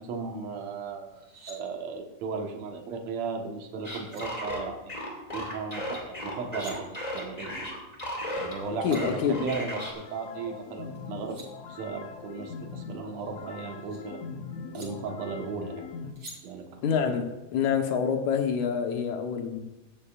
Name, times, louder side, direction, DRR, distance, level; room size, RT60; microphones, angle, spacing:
voice 1, 0.0-5.0 5.3-7.5 8.4-11.4 11.7-14.3 14.7-15.9 16.3-16.8, right 4 dB, 70° right, 2.5 m, -36 dB
sound 1, 1.1-1.6 3.6-3.7 4.0-4.2 6.3-6.7 8.4-8.5 8.7-9.0 10.9-11.5 13.0-14.0 14.7-14.9 16.2-16.4, right 1 dB, 40° right, 4.0 m, -48 dB
sound 2, 3.8-8.6 8.9-9.9, left 1 dB, 15° left, 2.1 m, -35 dB
sound 3, 8.3-16.1, left 5 dB, 65° left, 2.1 m, -42 dB
voice 2, 8.8-9.4 16.8-19.6, left 7 dB, 80° left, 2.6 m, -27 dB
16.5 x 12.0 x 2.5 m
omnidirectional pair, 3.4 m